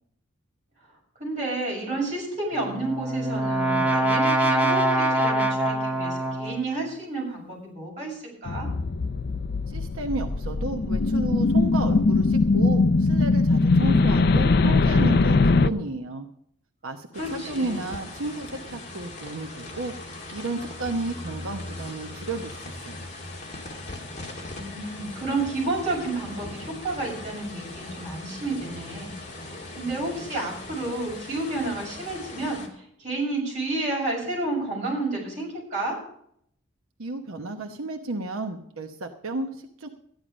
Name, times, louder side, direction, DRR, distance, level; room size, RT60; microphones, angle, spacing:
voice 1, 1.2-8.7 17.2-17.9 24.5-29.1 29.5-36.0, right 2 dB, 35° right, -4 dB, 6.7 m, -31 dB
Brass instrument, 2.6-6.7, right 1 dB, 10° right, 0.9 m, -24 dB
sound 1, 8.5-15.7, left 3 dB, 50° left, 0.5 m, -21 dB
voice 2, 9.7-16.3 16.8-19.9 20.3-23.1 37.0-39.9, right 2 dB, 85° right, 4 dB, 1.0 m, -32 dB
sound 2, 17.1-32.7, left 2 dB, 35° left, 2.4 m, -39 dB
13.5 x 10.5 x 5.1 m, 0.68 s
head